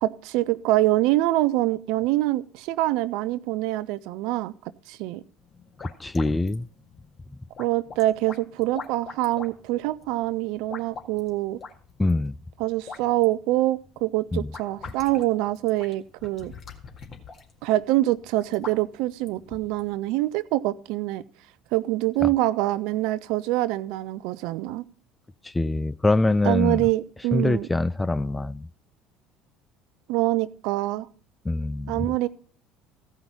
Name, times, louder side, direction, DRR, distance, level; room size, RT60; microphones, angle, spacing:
voice 1, 0.0-4.5 4.9-5.2 7.6-11.6 12.6-16.5 17.6-21.2 21.7-24.8 26.4-27.7 30.1-31.1 31.9-32.3, right 16 dB, 65° right, 0.5 m, -25 dB
sound 1, 5.4-20.0, left 4 dB, 45° left, 2.0 m, -45 dB
voice 2, 5.8-6.7 12.0-12.4 14.3-14.5 25.5-26.8 27.3-28.7 31.5-32.1, left 2 dB, 15° left, 0.4 m, -24 dB
15.0 x 5.6 x 5.9 m
hypercardioid pair, 65°, 0 cm